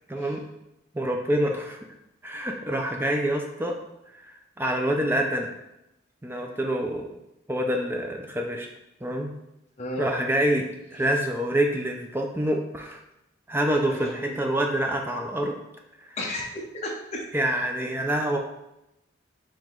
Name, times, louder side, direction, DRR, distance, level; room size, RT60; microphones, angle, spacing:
voice 1, 0.1-0.4 0.9-1.8 2.2-3.7 4.6-5.5 6.2-7.1 7.5-8.7 9.0-9.3 10.0-13.0 13.5-15.5 16.1-16.2 17.3-18.4, right 1 dB, 10° right, 2 dB, 0.4 m, -26 dB
voice 2, 9.8-10.1 13.9-14.4 16.2-17.2, left 1 dB, 35° left, -3 dB, 0.7 m, -34 dB
4.7 x 3.0 x 3.7 m, 0.88 s
head